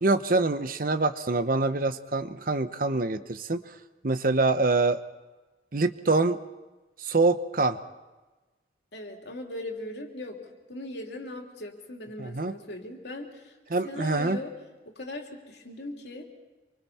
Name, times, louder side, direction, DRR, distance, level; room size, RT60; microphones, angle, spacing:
voice 1, 0.0-3.6 4.0-5.0 5.7-6.4 7.0-7.8 12.2-12.5 13.7-14.4, right 3 dB, 50° right, 11 dB, 0.9 m, -25 dB
voice 2, 8.9-10.4 10.7-13.5 13.8-14.5 14.9-16.2, left 1 dB, 70° left, 1 dB, 3.1 m, -39 dB
27.0 x 24.5 x 4.3 m, 1.2 s
head